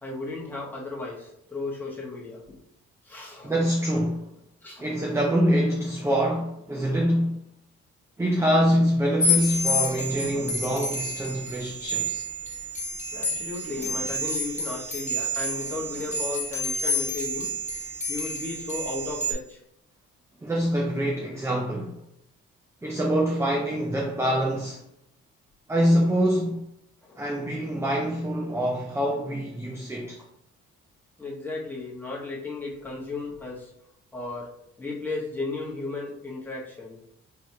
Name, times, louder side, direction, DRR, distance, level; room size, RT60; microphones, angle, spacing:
voice 1, 0.0-2.6 3.0-3.5 4.6-4.9 13.1-17.5 18.1-19.6 27.0-27.3 31.2-33.7 34.1-34.5 34.8-37.0, left 3 dB, 5° left, 1.5 m, -35 dB
voice 2, 3.4-4.3 4.8-7.4 8.2-12.2 20.4-22.0 22.8-24.8 25.7-26.6 27.2-30.2, equal, 10° right, 0.6 m, -25 dB
sound 1, 9.2-19.3, left 1 dB, 25° left, 1.3 m, -29 dB
4.8 x 3.1 x 2.8 m
cardioid pair, 90°, 30 cm